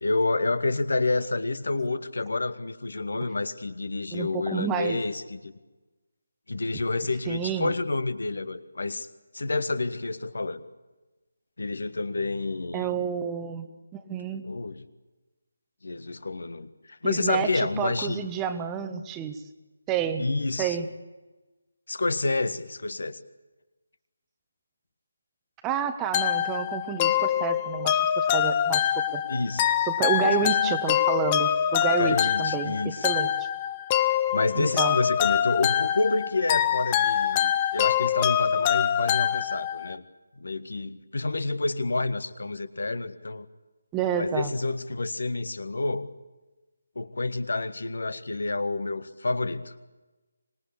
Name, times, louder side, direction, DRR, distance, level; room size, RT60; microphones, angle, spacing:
voice 1, 0.0-5.5 6.5-9.1 9.3-10.6 11.6-13.0 14.4-14.8 15.8-18.3 20.2-20.8 21.9-23.2 29.3-29.7 30.2-30.5 32.0-33.1 34.3-40.0 40.4-43.5 44.2-46.1 47.0-49.8, left 3 dB, 60° left, 13 dB, 1.6 m, -29 dB
voice 2, 4.1-5.0 7.3-7.7 12.7-13.7 13.9-14.4 17.0-19.4 19.9-20.2 20.6-20.9 25.6-29.2 29.8-33.3 34.6-35.0 43.9-44.5, right 8 dB, 10° right, 9 dB, 1.2 m, -29 dB
sound 1, 26.1-40.0, left 10 dB, 20° left, 0.9 m, -25 dB
25.5 x 21.0 x 8.4 m, 1.2 s
figure-of-eight pair, 155°, 0 cm